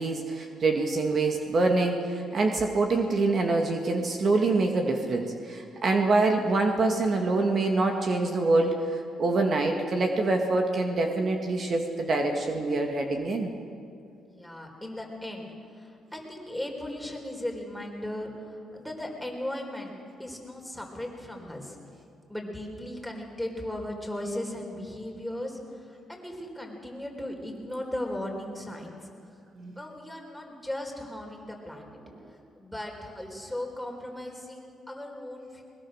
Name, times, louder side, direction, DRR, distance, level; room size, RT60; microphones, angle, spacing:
voice 1, 0.0-13.5 29.6-29.7, right 3 dB, 50° right, 3 dB, 2.1 m, -25 dB
voice 2, 14.3-19.9 20.2-21.8 22.3-29.1 29.8-32.0 32.3-35.6, left 1 dB, ahead, 1 dB, 4.2 m, -37 dB
21.0 x 21.0 x 6.5 m, 2.5 s
cardioid pair, 90°, 0 cm